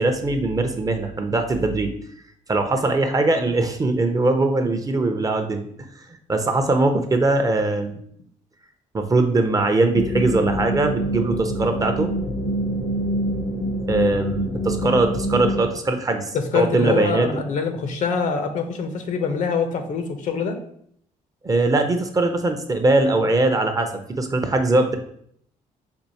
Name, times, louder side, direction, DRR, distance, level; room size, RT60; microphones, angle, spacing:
voice 1, 0.0-1.9 2.5-5.7 6.1-8.0 8.9-12.1 13.9-17.3 21.4-25.0, right 2 dB, 25° right, 6 dB, 0.5 m, -21 dB
sound 1, 9.9-15.6, right 1 dB, 90° left, 0.8 m, -26 dB
voice 2, 16.3-20.6, left 5 dB, 60° left, 6 dB, 0.6 m, -24 dB
4.4 x 2.5 x 2.7 m, 0.65 s
cardioid pair, 90°, 14 cm